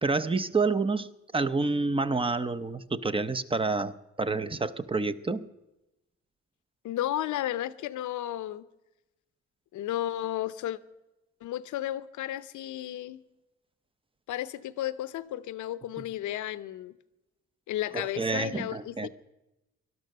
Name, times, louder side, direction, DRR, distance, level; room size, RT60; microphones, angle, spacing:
voice 1, 0.0-5.5 17.9-19.1, right 3 dB, 20° right, 11 dB, 0.6 m, -28 dB
voice 2, 6.8-8.7 9.7-10.8 11.4-13.2 14.3-16.9 17.7-19.1, left 13 dB, 85° left, 16 dB, 0.7 m, -33 dB
18.5 x 12.0 x 6.6 m, 0.97 s
cardioid pair, 90°, 29 cm